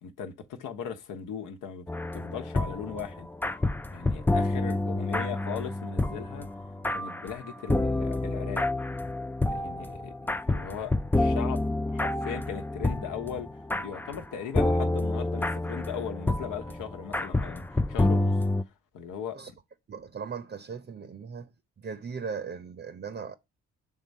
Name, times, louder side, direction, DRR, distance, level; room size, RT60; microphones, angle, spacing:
voice 1, 0.0-1.9 2.1-3.3 3.9-6.5 6.9-8.7 9.4-11.6 11.9-13.5 13.8-18.4 18.9-19.6, left 8 dB, 70° left, 1.1 m, -38 dB
sound 1, 1.9-14.3 14.5-18.6, left 2 dB, 5° left, 0.4 m, -29 dB
voice 2, 19.9-21.5 21.8-23.3, right 6 dB, 35° right, 0.8 m, -38 dB
7.3 x 3.6 x 5.3 m
hypercardioid pair, 45°, 33 cm